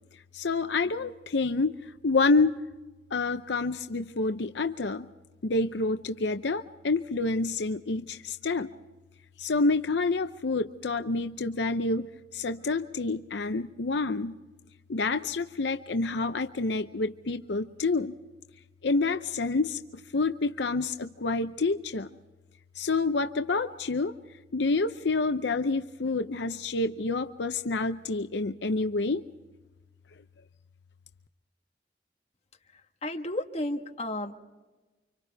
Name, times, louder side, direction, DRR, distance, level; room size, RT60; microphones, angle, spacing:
voice 1, 0.3-2.6 3.1-5.1 5.4-8.7 9.4-14.4 14.9-18.1 18.8-22.1 22.8-24.1 24.5-29.2, left 3 dB, 70° left, 8 dB, 0.7 m, -28 dB
voice 2, 32.7-34.4, left 1 dB, 35° left, 3 dB, 1.5 m, -33 dB
29.5 x 25.5 x 3.5 m, 1.2 s
head